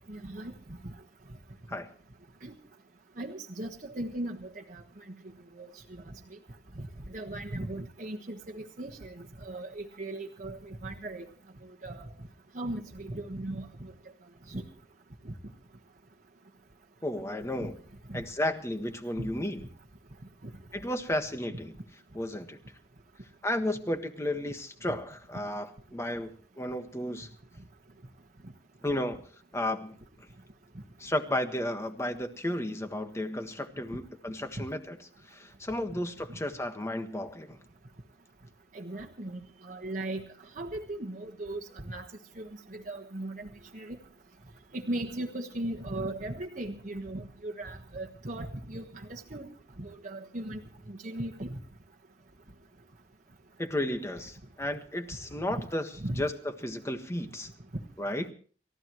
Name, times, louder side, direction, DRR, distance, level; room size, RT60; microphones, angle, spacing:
voice 1, 0.1-0.5 0.8-0.9 2.4-2.5 3.2-4.8 5.6-5.7 6.8-6.9 7.1-11.2 11.8-12.0 12.5-13.9 14.5-14.6 15.2-15.3 18.1-18.2 19.2-19.3 38.7-40.2 40.6-41.6 41.9-42.1 42.4-43.5 43.7-44.0 44.7-49.5 49.8-50.6 50.9-51.6 56.0-56.2, right 1 dB, 45° right, 0 dB, 1.4 m, -37 dB
voice 2, 17.0-17.8 18.1-19.6 20.7-21.7 22.1-22.6 23.4-27.3 28.8-29.2 29.5-30.0 31.0-35.0 35.3-37.6 53.6-55.9 56.2-57.5 58.0-58.2, left 1 dB, 15° left, 7 dB, 1.5 m, -33 dB
30.0 x 14.5 x 3.1 m, 0.42 s
head